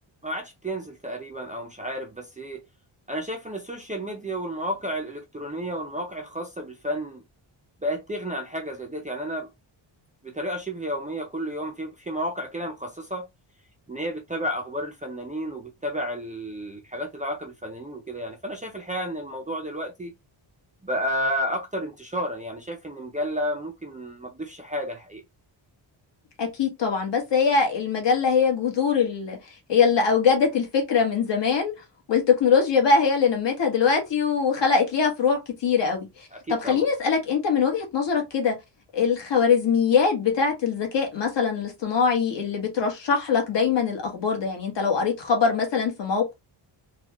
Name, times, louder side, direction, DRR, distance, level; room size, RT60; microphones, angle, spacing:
voice 1, 0.2-2.6 3.1-7.2 7.8-9.5 10.2-13.3 13.9-20.1 20.8-25.2 36.3-36.9, equal, 15° right, 0.4 m, -31 dB
voice 2, 26.4-29.4 29.7-31.7 32.1-36.1 36.6-38.5 38.9-46.3, left 5 dB, 60° left, 1.4 m, -22 dB
4.1 x 2.3 x 2.9 m
wide cardioid pair, 175°, 47 cm